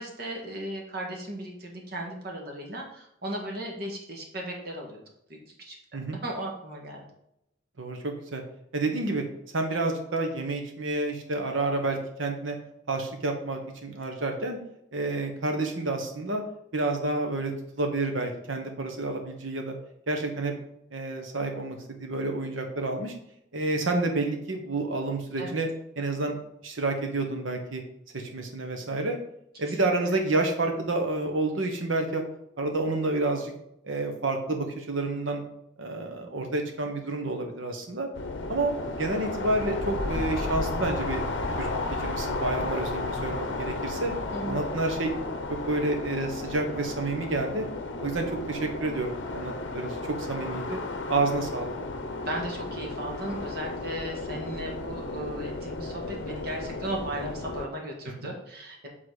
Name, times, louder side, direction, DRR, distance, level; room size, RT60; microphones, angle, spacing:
voice 1, 0.0-5.0 5.3-5.8 6.2-7.0 25.4-25.6 29.7-29.9 40.1-40.6 44.3-44.6 52.3-58.9, right 1 dB, 50° right, 0 dB, 1.5 m, -36 dB
voice 2, 7.8-8.4 8.7-9.2 9.5-12.6 12.9-14.6 14.9-16.4 16.7-19.7 20.1-20.5 20.9-23.1 23.5-25.7 26.0-26.4 26.6-27.8 28.1-29.2 29.6-32.2 32.6-33.5 33.8-35.4 35.8-38.1 38.5-41.2 41.6-41.7 42.0-44.1 44.5-45.1 45.7-47.6 48.0-50.8 51.1-51.8, right 2 dB, 85° right, 4 dB, 1.2 m, -29 dB
sound 1, 38.1-57.7, left 2 dB, 70° left, 0.7 m, -33 dB
7.9 x 4.0 x 4.0 m, 0.79 s
head